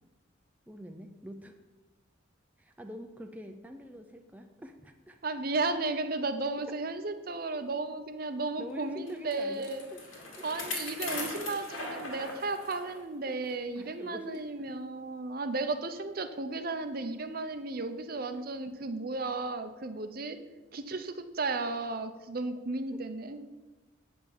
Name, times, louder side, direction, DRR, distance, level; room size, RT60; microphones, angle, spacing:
voice 1, 0.7-1.6 2.6-5.2 8.6-10.0 10.4-10.5 11.5-11.6 13.8-14.7 18.3-18.4 22.9-23.0, equal, 10° right, 5 dB, 0.5 m, -45 dB
voice 2, 5.2-9.9 10.4-20.4 20.7-23.4, right 3 dB, 45° right, 9 dB, 0.6 m, -34 dB
Bicycle, 9.1-13.0 13.4-13.5 14.3-14.4, left 2 dB, 85° left, 2.4 m, -39 dB
8.7 x 5.6 x 7.2 m, 1.2 s
head